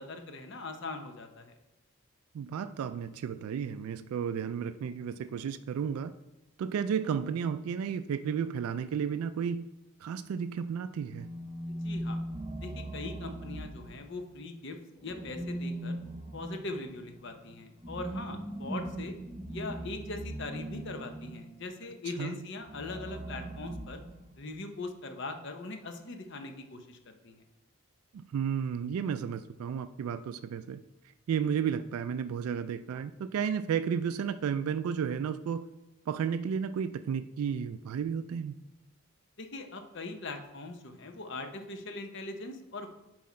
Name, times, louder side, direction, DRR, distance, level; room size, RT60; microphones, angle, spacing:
voice 1, 0.0-1.5 11.7-12.2 12.6-16.0 16.3-19.2 19.5-24.0 24.4-27.4 39.4-42.9, left 2 dB, 55° left, 6 dB, 0.8 m, -41 dB
voice 2, 2.3-6.1 6.6-9.7 10.0-11.3 22.2-22.4 28.1-30.8 31.3-35.7 36.1-38.6, right 7 dB, 85° right, 13 dB, 0.3 m, -33 dB
sound 1, 11.0-14.4 15.0-21.6 22.6-24.6, right 1 dB, 20° right, 0.6 m, -40 dB
7.6 x 4.8 x 4.2 m, 0.95 s
head